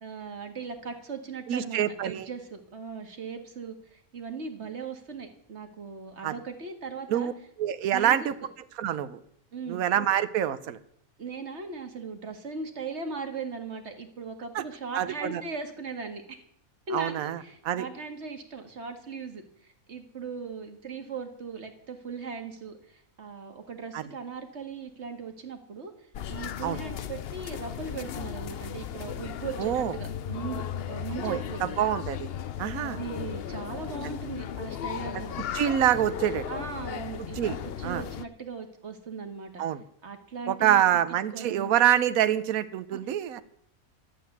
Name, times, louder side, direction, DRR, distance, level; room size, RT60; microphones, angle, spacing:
voice 1, 0.0-7.3 7.9-8.3 9.5-9.8 11.2-16.4 16.9-31.9 32.8-35.4 36.5-39.6 40.0-41.0 41.3-41.7 42.9-43.0, right 5 dB, 50° right, 6 dB, 2.0 m, -39 dB
voice 2, 1.5-2.3 6.2-6.3 7.1-7.3 7.6-8.3 8.8-9.2 9.7-10.8 14.5-14.6 14.9-15.4 16.9-17.4 17.6-17.9 23.9-24.0 26.6-26.8 29.6-29.9 31.2-32.3 32.6-33.0 35.5-36.4 37.4-37.6 37.8-38.0 39.6-39.8 40.5-43.4, right 11 dB, 75° right, 13 dB, 1.2 m, -26 dB
sound 1, 26.1-38.2, left 9 dB, 55° left, 0.7 m, -36 dB
12.0 x 8.4 x 9.4 m, 0.68 s
omnidirectional pair, 1.5 m